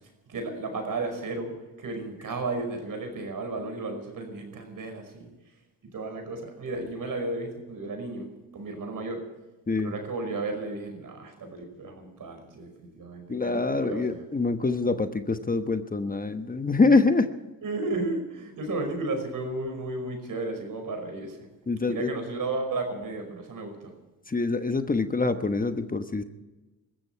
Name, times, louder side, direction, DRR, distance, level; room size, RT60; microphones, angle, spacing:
voice 1, 0.3-5.3 5.8-8.3 8.5-9.3 9.8-14.2 17.6-21.5 21.9-23.9, right 2 dB, 65° right, 5 dB, 5.4 m, -33 dB
voice 2, 13.3-17.3 21.7-22.1 24.3-26.2, left 3 dB, 25° left, 8 dB, 1.1 m, -25 dB
22.0 x 14.0 x 4.6 m, 1.1 s
cardioid pair, 75°, 35 cm